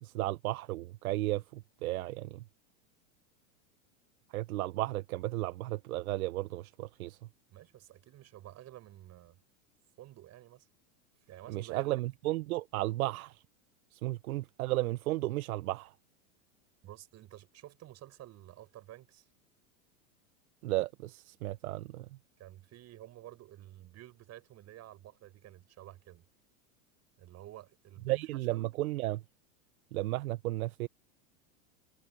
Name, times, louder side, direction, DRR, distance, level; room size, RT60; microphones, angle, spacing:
voice 1, 0.0-2.4 4.3-7.2 11.5-13.4 13.9-15.9 20.6-22.1 28.1-29.2 29.9-30.9, right 17 dB, 75° right, 0.9 m, -34 dB
voice 2, 7.5-9.4 10.0-10.7 11.3-12.0 16.8-19.3 22.4-26.3 27.2-28.6, right 14 dB, 35° right, 7.0 m, -51 dB
supercardioid pair, 125°, 43 cm